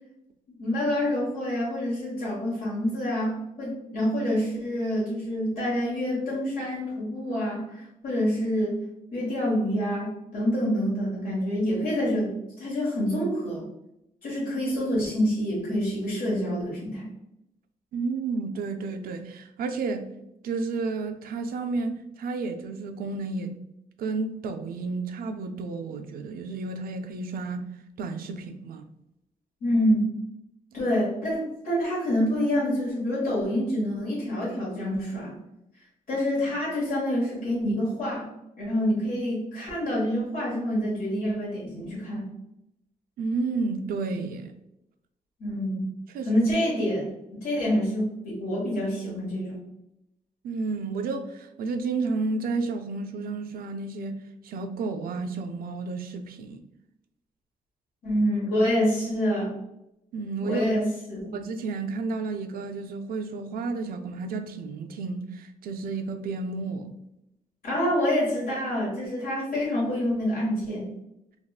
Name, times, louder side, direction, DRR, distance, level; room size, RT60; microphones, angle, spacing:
voice 1, 0.5-8.8 9.1-13.7 14.2-17.1 29.6-30.1 30.7-35.4 36.1-38.3 38.6-42.3 45.4-45.9 46.2-47.0 47.3-49.6 58.0-59.5 60.4-61.3 67.6-70.9, equal, 80° left, 1.5 m, -27 dB
voice 2, 17.9-20.1 20.4-23.5 24.0-27.7 28.0-28.9 43.2-44.5 46.1-46.4 50.4-56.6 60.1-60.6 61.3-66.9, right 3 dB, 80° right, 0.4 m, -31 dB
3.4 x 2.3 x 2.3 m
wide cardioid pair, 150°, 15 cm